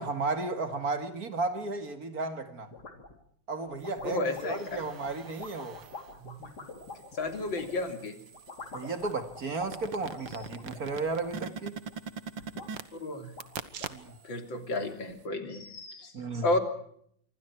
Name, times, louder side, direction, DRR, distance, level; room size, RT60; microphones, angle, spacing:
voice 1, 0.0-2.7 3.5-5.8 8.7-11.8 13.9-14.2 16.1-16.5, right 3 dB, 50° right, 2.5 m, -34 dB
sound 1, 2.7-3.2 3.7-7.9 8.3-11.6 11.9-12.7 13.1-13.2 13.4-14.2, left 3 dB, 55° left, 4.0 m, -46 dB
voice 2, 4.0-4.8 6.2-6.5 7.1-8.2 13.0-13.3 14.2-16.1 16.4-16.6, left 2 dB, 75° left, 3.8 m, -32 dB
sound 2, 4.1-6.1 6.6-14.4 14.7-14.8, right 6 dB, 75° right, 2.1 m, -44 dB
26.5 x 24.5 x 4.7 m
omnidirectional pair, 2.1 m